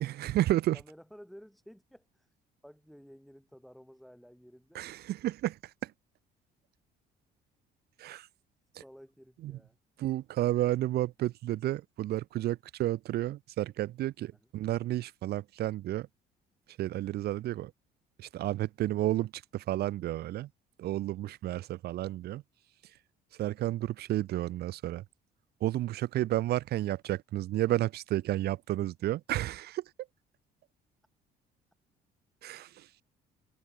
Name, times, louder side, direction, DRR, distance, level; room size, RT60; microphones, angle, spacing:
voice 1, 0.0-0.8 4.7-5.9 8.0-8.3 9.4-9.6 10.0-16.1 16.8-17.7 18.2-20.5 20.8-22.4 23.4-25.0 25.6-29.8 32.4-33.0, right 14 dB, 70° right, 1.7 m, -31 dB
voice 2, 0.7-2.3 2.6-4.8 8.8-9.8, equal, ahead, 7.0 m, -53 dB
cardioid pair, 110°, 17 cm